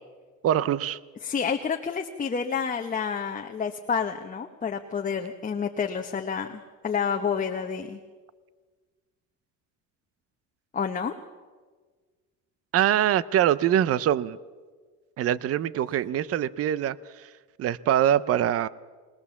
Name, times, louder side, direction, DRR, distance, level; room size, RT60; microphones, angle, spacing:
voice 1, 0.4-1.0 12.7-14.4 15.2-17.3 17.6-18.7, right 11 dB, 45° right, 19 dB, 0.7 m, -24 dB
voice 2, 1.2-8.0 10.7-11.1, left 6 dB, 25° left, 4 dB, 1.0 m, -29 dB
21.0 x 20.5 x 7.1 m, 1.5 s
cardioid pair, 110°, 32 cm